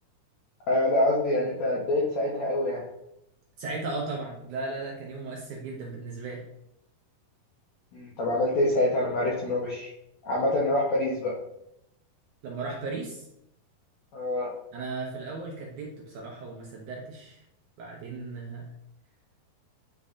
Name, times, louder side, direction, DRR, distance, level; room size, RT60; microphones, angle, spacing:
voice 1, 0.7-2.8 7.9-9.9 10.2-11.3 14.1-14.5, left 1 dB, 75° left, -4 dB, 1.6 m, -26 dB
voice 2, 3.6-6.4 12.4-13.3 14.7-17.4 17.8-18.7, right 3 dB, 70° right, -2 dB, 2.0 m, -36 dB
9.6 x 4.0 x 2.5 m, 0.81 s
omnidirectional pair, 4.4 m